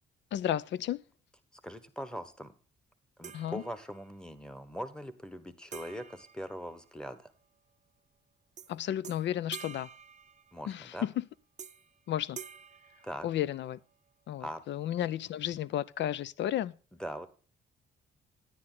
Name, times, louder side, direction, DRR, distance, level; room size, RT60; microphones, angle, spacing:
voice 1, 0.3-1.0 3.3-3.6 8.7-9.9 10.7-11.2 12.1-12.4 13.2-13.8 14.3-16.7, left 11 dB, 65° left, 0.5 m, -33 dB
voice 2, 1.6-2.5 3.2-7.3 10.5-11.1 13.0-13.3 14.4-14.6 17.0-17.3, equal, 5° left, 1.2 m, -41 dB
sound 1, 3.2-4.2 5.7-7.3 8.6-8.7 9.0-10.9 11.6-12.0 12.4-13.8, right 7 dB, 40° right, 0.6 m, -49 dB
9.9 x 9.7 x 3.9 m
cardioid pair, 90°, 20 cm